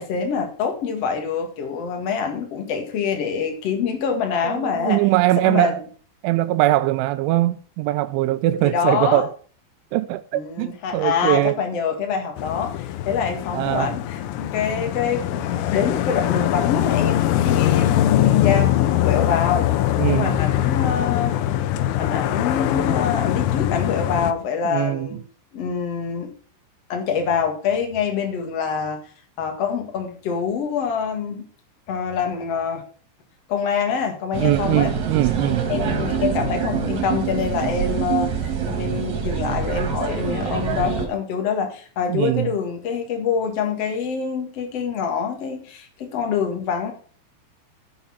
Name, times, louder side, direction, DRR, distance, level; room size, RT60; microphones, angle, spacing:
voice 1, 0.0-5.0 5.4-5.7 8.6-9.2 10.3-19.7 20.1-21.5 22.0-25.2 25.5-26.3 26.9-29.0 29.4-31.4 31.9-32.8 33.5-34.9 35.7-38.3 38.6-46.9, left 6 dB, 60° left, 1.6 m, -25 dB
voice 2, 4.4-5.8 6.2-9.3 9.9-11.6 13.5-13.9 20.0-20.4 24.6-25.2 34.4-35.7 40.4-40.7 42.1-42.5, right 16 dB, 85° right, 2.8 m, -21 dB
sound 1, 12.4-24.3, left 12 dB, 85° left, 3.4 m, -22 dB
sound 2, 34.3-41.1, right 6 dB, 50° right, 2.5 m, -25 dB
13.5 x 5.7 x 5.8 m
omnidirectional pair, 5.9 m